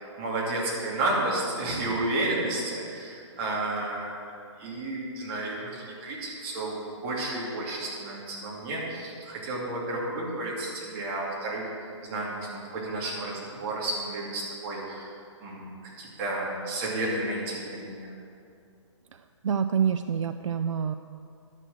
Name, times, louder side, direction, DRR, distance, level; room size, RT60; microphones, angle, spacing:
voice 1, 0.2-4.3 4.6-6.8 7.0-15.1 15.4-18.1, right 2 dB, 25° right, -4 dB, 2.7 m, -32 dB
voice 2, 19.4-20.9, right 7 dB, 85° right, 9 dB, 0.5 m, -26 dB
11.0 x 6.5 x 7.7 m, 2.4 s
hypercardioid pair, 160°, 16 cm